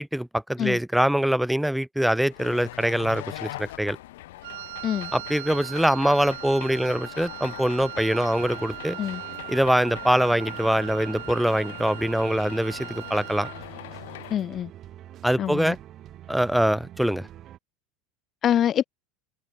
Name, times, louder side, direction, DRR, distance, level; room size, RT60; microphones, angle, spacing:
voice 1, 0.0-4.0 5.1-9.0 9.5-13.5 15.2-15.8 16.3-17.3, equal, ahead, 0.8 m, -24 dB
sound 1, 2.3-14.4, left 17 dB, 85° left, 7.3 m, -41 dB
Wind instrument woodwind instrument, 4.4-13.7, right 17 dB, 90° right, 1.5 m, -39 dB
sound 2, 8.1-17.6, right 12 dB, 35° right, 3.0 m, -46 dB
voice 2, 14.3-14.7 15.4-15.7 18.4-18.9, left 10 dB, 30° left, 0.5 m, -25 dB
supercardioid pair, 145°, 0 cm